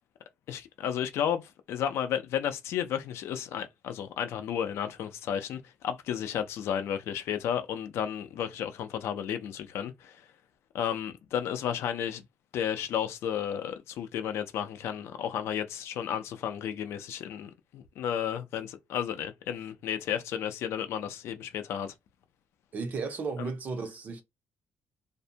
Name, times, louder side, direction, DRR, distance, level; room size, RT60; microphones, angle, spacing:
voice 1, 0.5-10.2 10.7-12.2 12.5-21.9 23.4-23.5, left 9 dB, 65° left, 0.4 m, -33 dB
voice 2, 22.7-24.2, right 4 dB, 35° right, 0.5 m, -34 dB
2.5 x 2.1 x 2.7 m
cardioid pair, 175°, 5 cm